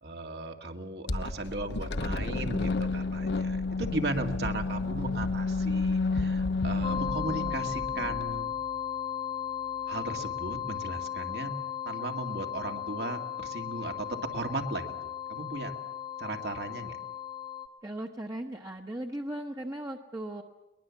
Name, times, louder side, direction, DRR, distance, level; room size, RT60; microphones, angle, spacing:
voice 1, 0.0-8.5 9.9-11.5 11.9-14.1 14.3-14.9 15.3-15.7 16.2-17.0, right 2 dB, 70° right, 4 dB, 2.2 m, -36 dB
sound 1, 1.1-8.4, left 3 dB, 80° left, 0.9 m, -31 dB
sound 2, 6.8-17.7, left 9 dB, 25° left, 0.8 m, -36 dB
voice 2, 17.8-20.4, right 1 dB, 20° right, 2 dB, 1.0 m, -37 dB
22.0 x 20.5 x 7.2 m, 1.1 s
head